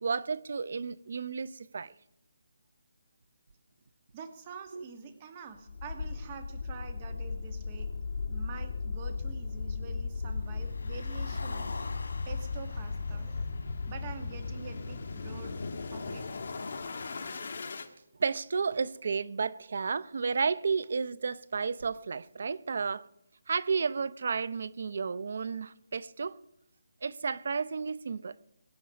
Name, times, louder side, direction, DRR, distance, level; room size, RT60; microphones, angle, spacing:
voice 1, 0.0-1.9 4.7-4.8 18.2-23.0 23.5-26.4 27.0-28.3, right 5 dB, 55° right, 0.6 m, -32 dB
voice 2, 4.1-7.9 8.3-11.7 12.2-13.5 13.9-15.6 15.9-16.3, right 6 dB, 25° right, 1.4 m, -46 dB
sound 1, 5.7-17.9, left 4 dB, 50° left, 1.6 m, -36 dB
Car, 10.4-14.8, left 3 dB, 75° left, 2.3 m, -46 dB
22.5 x 8.5 x 5.3 m
hypercardioid pair, 170°, 0 cm